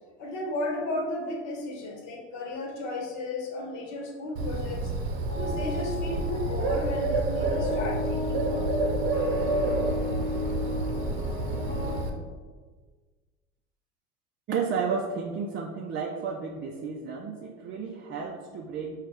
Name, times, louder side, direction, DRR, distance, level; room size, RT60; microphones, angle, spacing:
voice 1, 0.2-4.9 5.3-8.7, left 2 dB, 50° left, 1 dB, 1.1 m, -34 dB
Bird, 4.4-12.1, right 2 dB, 65° right, 0.8 m, -29 dB
sound 1, 5.3-12.0, left 2 dB, 25° left, 0.9 m, -34 dB
voice 2, 14.5-19.0, right 5 dB, 35° right, 0 dB, 0.5 m, -32 dB
5.0 x 2.4 x 3.4 m, 1.4 s
hypercardioid pair, 75°, 35 cm